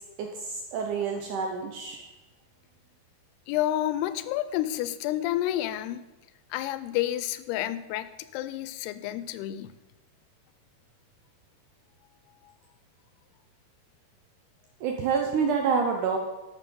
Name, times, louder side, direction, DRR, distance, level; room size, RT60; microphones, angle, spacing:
voice 1, 0.2-2.0 14.8-16.2, right 5 dB, 85° right, 3 dB, 1.8 m, -28 dB
voice 2, 3.5-6.0 6.5-9.7, left 13 dB, 85° left, 14 dB, 2.6 m, -30 dB
12.0 x 6.2 x 5.3 m, 1.1 s
omnidirectional pair, 4.6 m